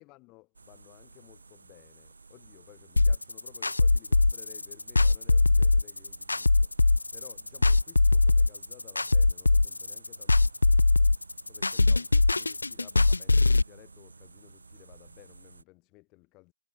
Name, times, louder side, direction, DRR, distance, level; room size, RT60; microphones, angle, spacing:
voice 1, 0.0-11.1 11.5-16.5, left 24 dB, 20° left, 3.5 m, -56 dB
sound 1, 0.5-15.6, right 4 dB, 70° right, 2.6 m, -53 dB
sound 2, 3.0-13.6, left 3 dB, 75° left, 0.4 m, -22 dB
figure-of-eight pair, 145°, 0 cm